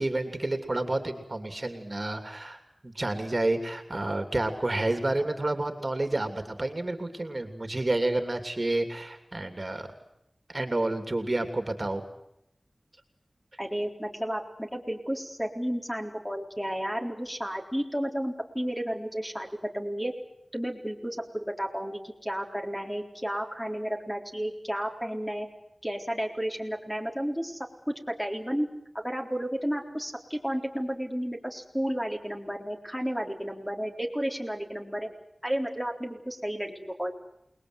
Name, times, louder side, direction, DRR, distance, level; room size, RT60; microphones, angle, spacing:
voice 1, 0.0-2.6 2.8-9.9 10.5-12.0, right 2 dB, 40° right, 6 dB, 2.9 m, -29 dB
voice 2, 13.6-20.1 20.5-25.5 25.8-28.7 29.0-35.1 35.4-36.7 37.0-37.1, equal, 5° left, 2 dB, 4.0 m, -32 dB
28.5 x 20.5 x 8.1 m, 0.82 s
wide cardioid pair, 50°, 0 cm